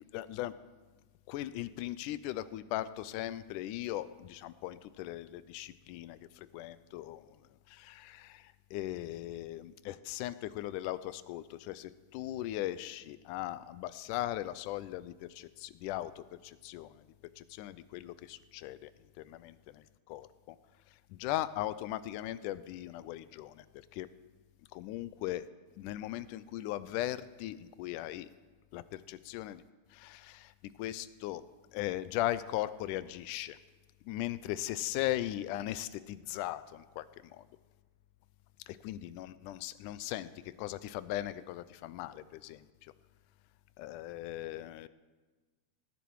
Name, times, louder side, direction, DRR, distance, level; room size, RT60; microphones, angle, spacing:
voice 1, 0.1-0.5 1.3-7.4 7.7-17.0 17.4-18.9 19.2-20.6 21.1-23.7 23.9-24.1 24.7-25.5 25.8-28.3 28.7-29.6 29.9-30.5 30.8-31.4 31.7-33.6 34.1-37.5 38.7-40.3 40.6-42.9 43.8-44.9, left 14 dB, 85° left, 15 dB, 2.1 m, -38 dB
17.5 x 10.0 x 4.7 m, 1.3 s
omnidirectional pair, 3.6 m